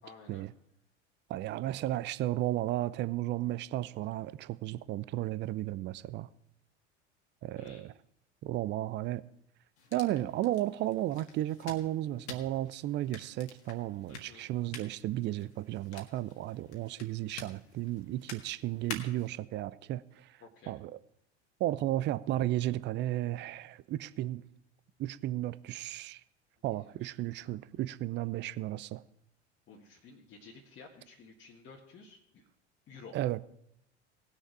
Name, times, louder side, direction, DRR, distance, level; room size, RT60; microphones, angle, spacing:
voice 1, 0.0-0.5 7.5-7.8 14.1-14.5 20.4-20.7 26.8-27.1 29.7-32.5 32.9-33.2, left 4 dB, 35° left, 1.7 m, -53 dB
voice 2, 1.3-6.3 7.4-7.9 8.4-9.2 9.9-20.3 20.7-20.9 21.6-24.4 25.0-26.2 26.6-29.0 33.1-33.4, right 14 dB, 30° right, 0.5 m, -34 dB
sound 1, 9.8-19.4, left 4 dB, 70° left, 1.8 m, -49 dB
18.5 x 6.5 x 4.7 m
figure-of-eight pair, 75°, 34 cm